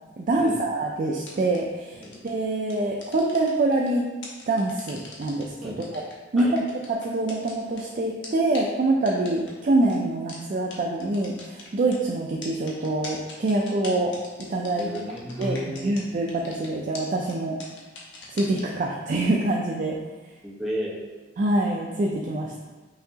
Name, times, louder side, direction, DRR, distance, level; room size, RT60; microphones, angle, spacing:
voice 1, 0.2-2.0 2.2-4.1 4.5-5.5 5.9-6.0 6.3-6.6 6.9-14.1 14.5-14.9 15.4-17.6 18.3-20.0 21.4-22.6, right 2 dB, 45° right, -1 dB, 0.4 m, -25 dB
sound 1, 1.3-1.6 2.0-2.3 2.7-3.9 4.2-5.4 5.8-7.8 8.2-8.3 8.5-8.6 9.1-9.5 9.9-10.0 10.3-10.4 10.7-10.8 11.0-12.0 12.4-16.0 16.3-16.7 16.9-17.0 17.3-17.4 17.6-18.6, left 3 dB, 80° left, 0.9 m, -41 dB
voice 2, 14.8-15.9 20.4-21.0, equal, ahead, -6 dB, 0.8 m, -32 dB
5.6 x 2.8 x 2.7 m, 1.3 s
head